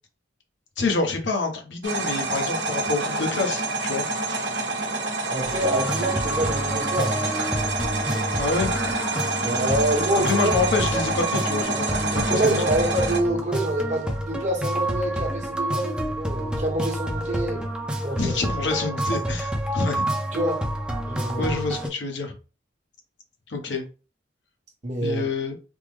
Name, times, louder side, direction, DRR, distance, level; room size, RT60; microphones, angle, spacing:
voice 1, 0.8-4.0 8.4-8.7 10.2-12.7 18.2-20.1 21.4-22.4 23.5-23.8 25.0-25.6, left 3 dB, 70° left, 0.8 m, -27 dB
sound 1, 1.8-13.2, right 2 dB, 70° right, 0.8 m, -27 dB
voice 2, 5.3-7.2 9.4-10.4 12.2-17.6 18.0-18.4 20.3-20.7 21.1-21.6 24.8-25.2, right 1 dB, 40° right, 0.9 m, -26 dB
sound 2, 5.4-21.9, right 1 dB, 5° right, 0.5 m, -29 dB
3.5 x 2.0 x 3.3 m
head